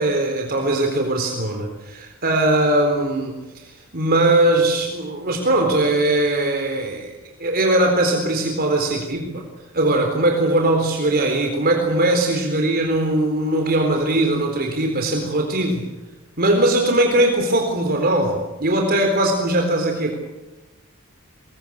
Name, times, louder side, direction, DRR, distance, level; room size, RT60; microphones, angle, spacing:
voice 1, 0.0-7.1 7.4-9.4 9.7-15.8 16.4-20.1, right 1 dB, 45° right, 3 dB, 4.0 m, -20 dB
26.5 x 22.5 x 8.8 m, 1.1 s
head